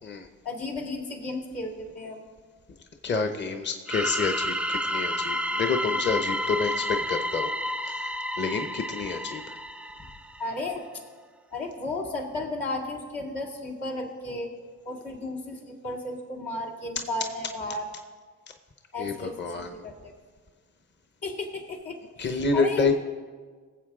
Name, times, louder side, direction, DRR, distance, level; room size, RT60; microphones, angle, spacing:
voice 1, 0.4-2.2 10.4-10.8 11.5-14.5 14.8-17.8 18.9-20.1 21.2-22.3 22.5-22.9, left 2 dB, 75° left, -1 dB, 2.5 m, -34 dB
voice 2, 3.0-7.5 7.8-9.6 19.0-19.8 22.2-22.9, left 4 dB, 30° left, 6 dB, 0.9 m, -28 dB
sound 1, 3.9-10.5, equal, 5° right, 0.3 m, -30 dB
18.0 x 7.6 x 3.7 m, 1.5 s
supercardioid pair, 60°, 36 cm